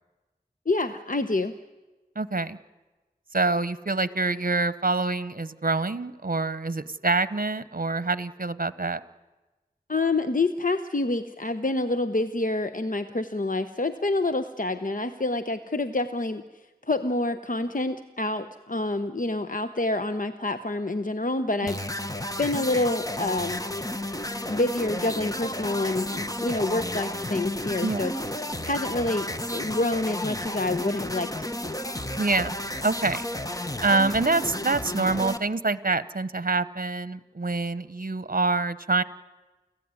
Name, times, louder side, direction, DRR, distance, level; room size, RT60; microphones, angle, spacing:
voice 1, 0.7-1.5 9.9-22.1 22.4-23.6 24.5-28.1 28.6-31.5, left 2 dB, 55° left, 10 dB, 0.9 m, -27 dB
voice 2, 2.2-2.6 3.3-9.0 27.8-28.1 32.2-32.6 32.8-33.2 33.8-39.0, right 3 dB, 55° right, 15 dB, 1.0 m, -26 dB
sound 1, 21.7-35.4, left 1 dB, 20° left, 1.3 m, -32 dB
29.5 x 16.0 x 9.7 m, 1.2 s
wide cardioid pair, 40°, 17 cm